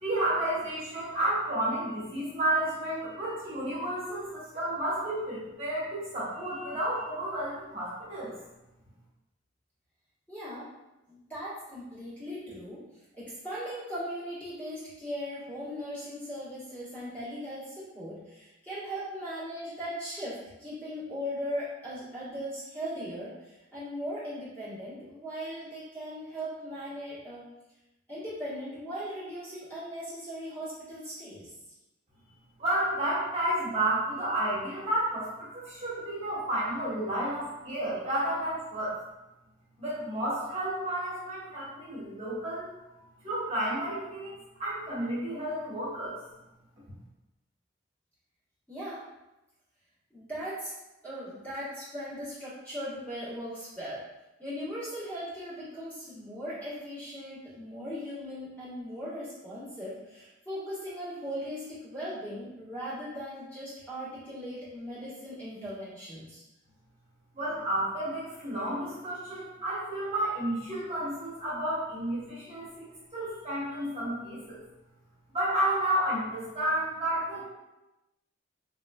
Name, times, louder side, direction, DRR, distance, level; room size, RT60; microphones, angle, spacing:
voice 1, 0.0-8.3 32.6-38.9 39.8-42.7 43.2-46.2 67.3-74.6 75.3-77.4, right 1 dB, 30° right, -9 dB, 1.1 m, -31 dB
voice 2, 10.3-10.7 11.1-12.8 13.1-27.5 28.1-31.5 48.7-49.0 50.1-50.7 51.0-54.0 54.4-66.4, equal, 10° left, -12 dB, 1.2 m, -38 dB
3.6 x 3.0 x 2.2 m, 0.99 s
head